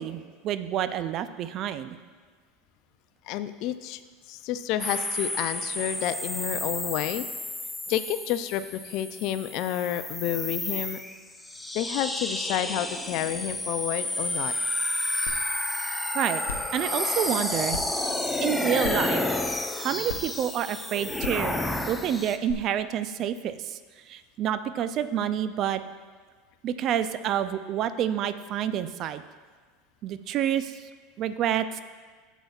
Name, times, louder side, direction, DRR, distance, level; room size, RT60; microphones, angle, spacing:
voice 1, 0.0-2.0 16.1-16.4 16.7-18.1 18.4-19.2 19.8-21.6 21.9-23.8 24.1-25.8 26.6-29.2 30.0-30.8 31.2-31.8, right 10 dB, 50° right, 12 dB, 0.5 m, -28 dB
voice 2, 3.3-4.0 4.3-7.3 7.9-11.0 11.7-14.5, left 11 dB, 55° left, 12 dB, 0.4 m, -30 dB
sound 1, 4.8-22.4, left 1 dB, 5° left, 0.7 m, -31 dB
sound 2, 15.3-15.4 15.8-15.9 16.4-16.7 17.7-17.8 18.8-19.1 20.1-20.2 21.2-21.4 22.5-22.6, left 7 dB, 85° left, 0.7 m, -34 dB
12.5 x 8.1 x 2.4 m, 1.5 s
hypercardioid pair, 90°, 0 cm